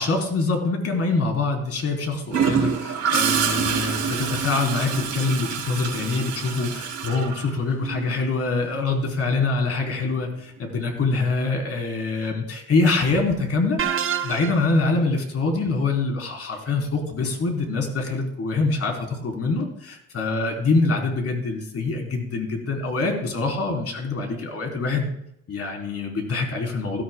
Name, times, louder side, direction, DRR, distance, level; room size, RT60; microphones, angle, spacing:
voice 1, 0.0-13.8 14.2-25.1 25.5-27.0, left 3 dB, 50° left, 2 dB, 3.5 m, -25 dB
Gurgling / Toilet flush, 2.3-8.1 10.1-10.3, right 6 dB, 70° right, 3.1 m, -26 dB
sound 1, 13.8-14.8, right 8 dB, 45° right, 0.8 m, -26 dB
16.5 x 13.5 x 2.3 m, 0.74 s
cardioid pair, 90°, 30 cm